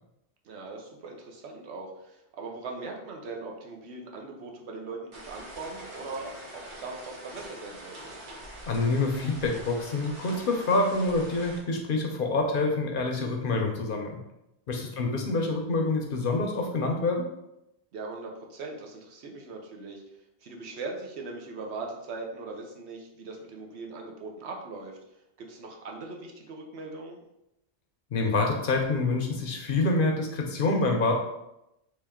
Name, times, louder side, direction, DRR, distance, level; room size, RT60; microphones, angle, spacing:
voice 1, 0.4-8.2 14.7-15.2 17.9-20.0 20.4-25.0 25.4-27.2, right 3 dB, 75° right, 1 dB, 1.0 m, -40 dB
sound 1, 5.1-11.6, right 1 dB, 50° right, 0.8 m, -44 dB
voice 2, 8.7-14.2 14.7-17.3 28.1-31.2, left 3 dB, 60° left, 2 dB, 0.7 m, -26 dB
3.2 x 3.0 x 3.5 m, 0.86 s
omnidirectional pair, 1.1 m